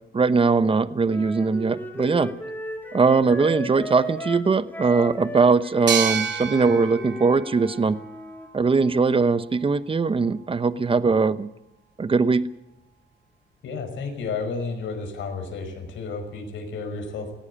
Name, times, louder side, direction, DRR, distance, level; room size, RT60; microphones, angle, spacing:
voice 1, 0.1-2.3 2.9-8.0 8.5-11.5 12.0-12.5, right 4 dB, 25° right, 14 dB, 0.9 m, -21 dB
Wind instrument woodwind instrument, 1.0-8.5, equal, 10° left, 5.2 m, -36 dB
sound 1, 5.9-9.2, right 7 dB, 65° right, 2.5 m, -30 dB
voice 2, 13.6-17.3, left 4 dB, 75° left, 5 dB, 5.6 m, -32 dB
19.0 x 16.0 x 8.7 m, 0.89 s
cardioid pair, 90°, 20 cm